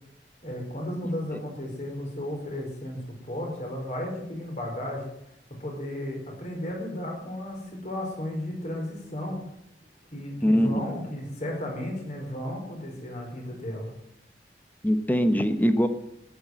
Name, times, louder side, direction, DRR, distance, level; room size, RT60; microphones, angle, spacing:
voice 1, 0.4-5.1 5.6-9.4 10.1-13.9, left 1 dB, 40° left, 1 dB, 4.6 m, -34 dB
voice 2, 10.4-10.8 14.8-15.9, equal, 10° left, 9 dB, 1.1 m, -22 dB
14.0 x 10.5 x 7.7 m, 0.79 s
head